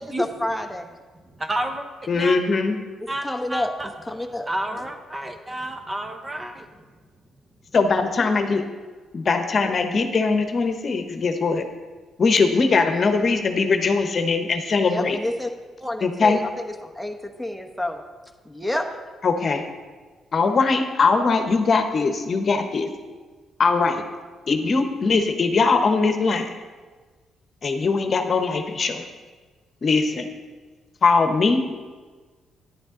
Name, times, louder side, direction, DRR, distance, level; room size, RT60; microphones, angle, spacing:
voice 1, 0.2-0.9 3.0-4.9 14.8-15.5 15.8-18.0 18.4-18.9, left 1 dB, ahead, 3 dB, 1.1 m, -29 dB
voice 2, 1.4-1.8 2.1-2.4 3.1-3.3 3.5-3.9 4.5-6.6, right 1 dB, 20° right, 5 dB, 1.2 m, -29 dB
voice 3, 2.1-2.8 7.7-8.6 9.1-11.6 12.2-15.2 16.0-16.4 19.2-19.6 20.3-22.9 23.6-24.0 24.5-26.5 27.6-29.0 29.8-30.3 31.0-31.8, left 4 dB, 45° left, 6 dB, 1.0 m, -21 dB
10.5 x 9.4 x 3.9 m, 1.4 s
cardioid pair, 90°, 0 cm